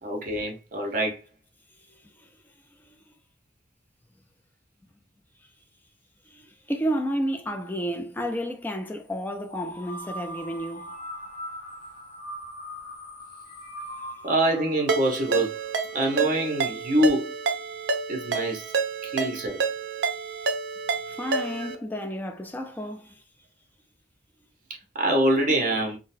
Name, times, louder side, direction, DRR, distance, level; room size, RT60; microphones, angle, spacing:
voice 1, 0.0-1.2 14.2-15.6 15.9-17.4 18.1-18.6 19.0-19.6 21.6-21.7 24.9-26.0, right 1 dB, 50° right, 1.0 m, -25 dB
voice 2, 6.3-10.9 21.1-23.2, equal, 10° left, 0.4 m, -31 dB
sound 1, 9.5-16.3, equal, 35° left, 0.8 m, -41 dB
Ringtone, 14.9-21.8, right 4 dB, 80° right, 0.5 m, -29 dB
3.8 x 2.1 x 2.6 m
head